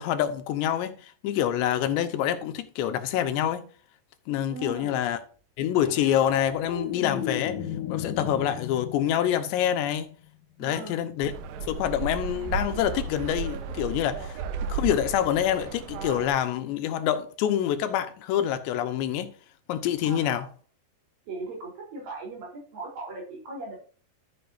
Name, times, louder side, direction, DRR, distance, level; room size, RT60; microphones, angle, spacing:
voice 1, 0.0-3.7 4.3-5.2 5.6-7.6 7.9-10.1 10.6-11.3 11.6-19.3 19.7-20.5, left 10 dB, 90° left, 3.2 m, -26 dB
voice 2, 4.5-5.0 10.6-11.1 20.0-20.5 21.3-23.8, right 2 dB, 55° right, 5.3 m, -38 dB
sound 1, 5.8-10.3 12.7-12.9, left 9 dB, 60° left, 2.2 m, -35 dB
sound 2, 11.2-16.3, right 5 dB, 70° right, 2.3 m, -34 dB
12.0 x 8.3 x 2.6 m
omnidirectional pair, 4.9 m